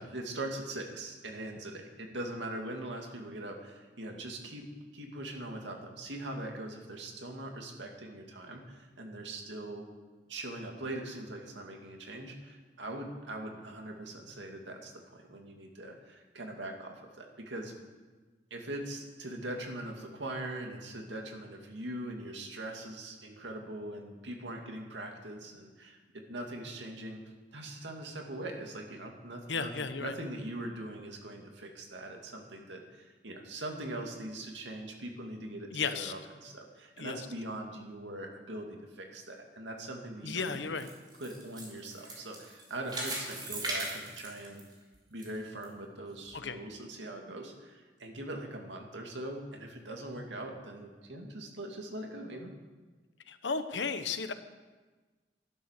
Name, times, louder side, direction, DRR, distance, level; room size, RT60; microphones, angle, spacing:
voice 1, 0.0-4.6 4.9-9.9 10.3-17.7 18.5-27.2 27.5-29.7 30.0-40.7 41.2-44.6 45.1-52.5, right 1 dB, 90° right, 2 dB, 2.4 m, -41 dB
voice 2, 29.5-30.1 35.7-36.1 37.0-37.2 40.2-40.9 46.3-46.6 53.3-54.3, left 5 dB, 90° left, 10 dB, 1.1 m, -34 dB
sound 1, 40.3-45.3 45.6-45.7 46.3-46.4, right 1 dB, 25° right, 3.4 m, -39 dB
13.5 x 11.5 x 6.7 m, 1.3 s
head